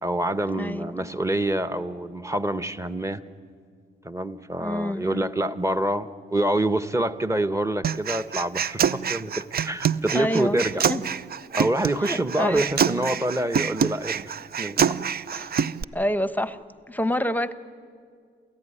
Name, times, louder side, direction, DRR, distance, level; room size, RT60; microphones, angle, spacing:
voice 1, 0.0-3.2 4.0-10.8 11.5-15.0, right 1 dB, 15° right, 12 dB, 1.1 m, -26 dB
voice 2, 0.6-1.1 4.6-5.3 10.1-10.6 10.9-11.0 12.0-12.6 15.3-15.5 15.9-16.6 16.9-17.5, left 1 dB, 10° left, 13 dB, 0.9 m, -27 dB
Human voice, 7.8-15.8, right 7 dB, 50° right, 0.6 m, -26 dB
28.0 x 14.5 x 9.9 m, 2.1 s
cardioid pair, 70°, 21 cm